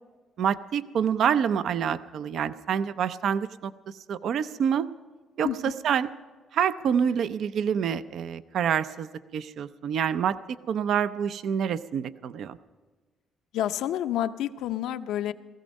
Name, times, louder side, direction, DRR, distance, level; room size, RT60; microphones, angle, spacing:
voice 1, 0.4-3.7 4.1-4.9 5.4-6.1 6.5-10.4 10.7-12.6, right 8 dB, 65° right, 14 dB, 0.5 m, -27 dB
voice 2, 5.4-5.7 13.5-15.3, left 11 dB, 80° left, 11 dB, 0.5 m, -29 dB
17.0 x 15.0 x 5.2 m, 1.4 s
cardioid pair, 85°, 0 cm